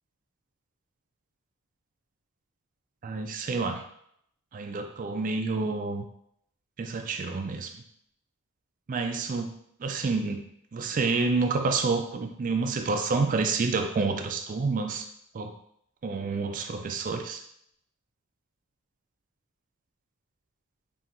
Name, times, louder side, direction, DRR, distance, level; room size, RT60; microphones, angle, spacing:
voice 1, 3.0-3.8 4.5-6.0 6.8-7.8 8.9-9.5 9.8-10.4 10.7-15.0 15.3-15.5 16.0-17.4, right 4 dB, 35° right, 6 dB, 0.3 m, -28 dB
5.7 x 2.7 x 2.6 m, 0.71 s
head